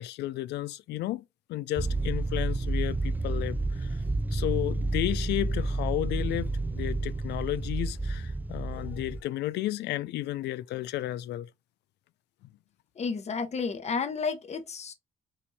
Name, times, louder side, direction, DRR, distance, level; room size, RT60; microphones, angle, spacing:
voice 1, 0.0-4.0 4.3-11.5, left 15 dB, 80° left, 0.4 m, -33 dB
sound 1, 1.8-9.2, right 2 dB, 10° right, 0.4 m, -30 dB
voice 2, 13.0-14.9, left 5 dB, 40° left, 1.0 m, -31 dB
5.6 x 2.6 x 3.3 m
cardioid pair, 105°, 17 cm